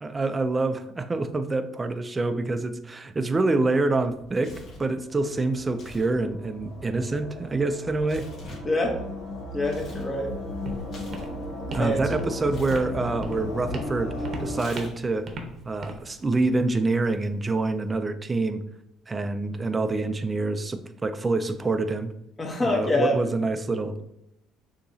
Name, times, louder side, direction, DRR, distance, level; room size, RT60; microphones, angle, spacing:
voice 1, 0.0-8.3 11.7-14.1 14.4-15.3 15.7-18.6 19.1-22.1 22.6-24.1, right 3 dB, 20° right, 10 dB, 0.4 m, -26 dB
Tearing, 4.0-4.9 5.7-6.1 6.4-10.1 10.4-11.9 12.5-12.8 14.5-15.2, left 2 dB, 50° left, 1.6 m, -46 dB
sound 1, 4.6-14.7, left 1 dB, 85° left, 1.4 m, -36 dB
voice 2, 8.6-9.0 9.5-10.3 11.7-12.2 22.4-23.2, left 1 dB, 20° left, 2 dB, 0.8 m, -26 dB
Walk footsteps, 10.0-17.9, right 2 dB, 40° right, 0.8 m, -41 dB
6.6 x 2.9 x 2.7 m, 0.80 s
cardioid pair, 125°, 0 cm